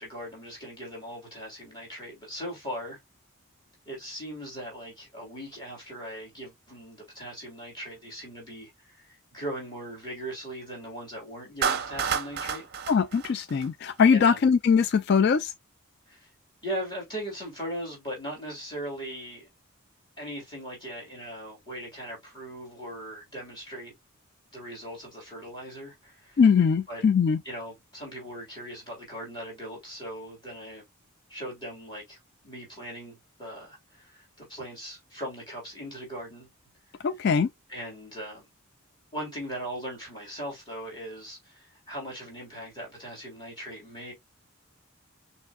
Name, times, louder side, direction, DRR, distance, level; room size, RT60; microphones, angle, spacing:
voice 1, 0.0-3.0 3.8-12.7 14.1-14.4 16.1-16.3 16.6-19.5 20.2-23.9 24.5-26.4 26.9-27.0 27.4-30.8 31.3-36.5 37.7-38.5 39.1-44.1, equal, 20° left, 3.2 m, -39 dB
Clapping, 11.6-14.0, right 6 dB, 45° right, 0.6 m, -30 dB
voice 2, 12.9-15.5 26.4-27.4 37.0-37.5, left 6 dB, 50° left, 0.3 m, -21 dB
5.9 x 3.2 x 2.3 m
head